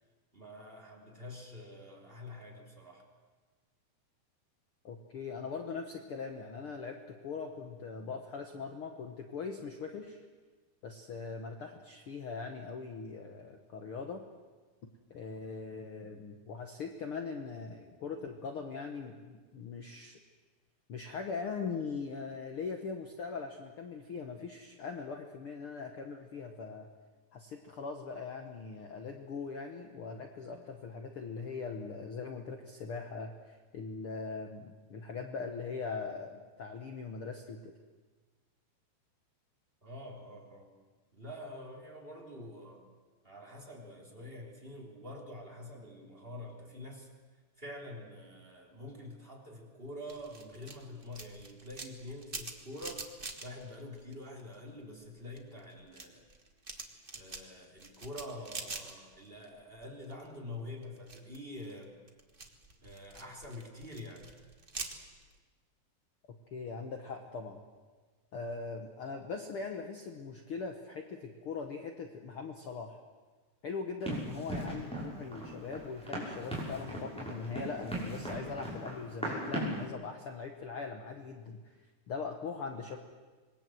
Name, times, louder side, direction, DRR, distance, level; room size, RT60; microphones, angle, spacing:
voice 1, 0.3-3.1 39.8-40.7 41.1-42.9 43.2-47.1 47.6-53.1 53.4-56.3 57.1-61.9 62.8-64.3, left 1 dB, 15° right, 2 dB, 3.1 m, -46 dB
voice 2, 4.8-10.2 10.8-14.2 15.1-20.2 20.9-26.9 27.3-37.7 66.5-67.6 68.3-73.0 73.6-81.6 82.1-83.0, left 4 dB, 70° left, 4 dB, 1.3 m, -41 dB
sound 1, 50.1-54.7 55.0-59.5 59.7-60.4 60.8-65.3, right 3 dB, 55° right, 0.5 m, -45 dB
Run, 74.0-79.9, right 1 dB, ahead, 6.1 m, -38 dB
26.5 x 21.5 x 7.8 m, 1.4 s
omnidirectional pair, 4.6 m